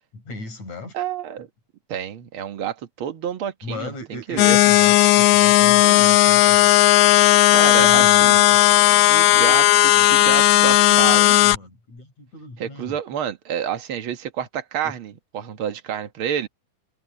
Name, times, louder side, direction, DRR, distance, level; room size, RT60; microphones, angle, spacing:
voice 1, 0.1-1.0 3.6-6.7 7.8-8.6 9.3-13.0 14.8-14.9, left 2 dB, 60° left, 7.5 m, -37 dB
voice 2, 0.9-1.5 1.9-4.6 7.5-8.4 9.0-9.6 10.0-11.3 12.6-16.5, right 9 dB, 50° right, 1.8 m, -29 dB
sound 1, 4.4-11.6, left 16 dB, 80° left, 1.9 m, -15 dB
omnidirectional pair, 3.7 m